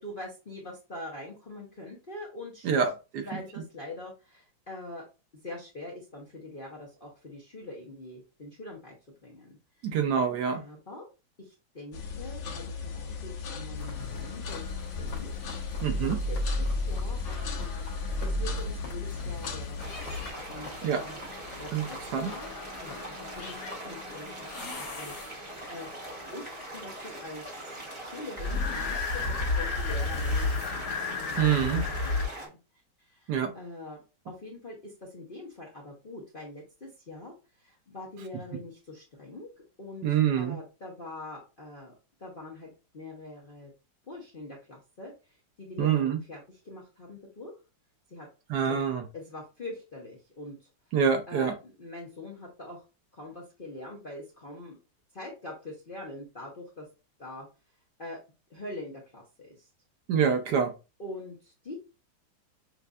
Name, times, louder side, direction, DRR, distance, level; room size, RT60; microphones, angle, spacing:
voice 1, 0.0-2.9 3.2-5.1 5.4-9.0 9.2-10.0 10.5-11.1 11.4-15.3 15.6-17.7 18.2-19.8 20.2-21.2 21.6-22.5 22.8-25.9 26.3-32.6 33.0-39.5 39.8-41.9 42.2-43.7 44.1-47.5 48.1-48.3 48.6-48.9 49.1-50.7 51.3-52.8 53.1-54.8 55.1-56.8 57.2-57.5 58.0-58.2 58.5-59.7 61.0-61.7, left 2 dB, 40° left, 0.9 m, -44 dB
voice 2, 9.8-10.6 15.8-16.2 20.8-21.0 21.7-22.3 31.4-31.8 33.3-33.5 40.0-40.6 45.8-46.2 48.5-49.0 50.9-51.5 60.1-60.7, right 7 dB, 70° right, 1.1 m, -26 dB
sound 1, 11.9-20.3, left 2 dB, 85° left, 1.7 m, -33 dB
sound 2, 13.8-25.7 28.4-32.3, left 3 dB, 65° left, 1.7 m, -35 dB
sound 3, 19.8-32.5, right 1 dB, 20° right, 1.1 m, -42 dB
6.5 x 2.5 x 2.4 m
omnidirectional pair, 2.1 m